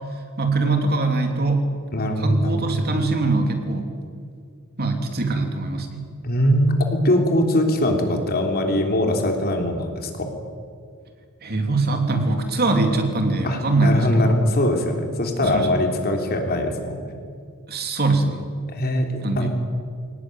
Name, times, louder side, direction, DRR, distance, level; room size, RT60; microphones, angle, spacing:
voice 1, 0.4-1.6 2.2-3.9 4.8-6.0 11.4-14.5 15.4-15.8 17.7-18.4 19.2-19.5, right 3 dB, 50° right, 4 dB, 3.1 m, -22 dB
voice 2, 1.9-2.7 6.2-10.3 13.4-17.0 18.7-19.1 19.4-19.5, left 1 dB, 45° left, 3 dB, 3.5 m, -21 dB
23.0 x 19.0 x 9.3 m, 2.1 s
head